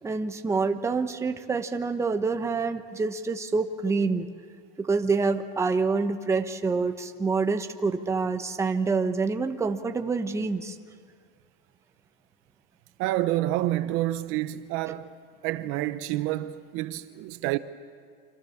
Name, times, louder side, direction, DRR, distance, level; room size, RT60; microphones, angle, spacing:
voice 1, 0.0-4.3 4.8-10.8, right 4 dB, 10° right, 1.0 m, -27 dB
voice 2, 13.0-15.1 15.4-17.6, right 15 dB, 45° right, 0.9 m, -28 dB
28.5 x 26.0 x 7.3 m
supercardioid pair, 150°, 29 cm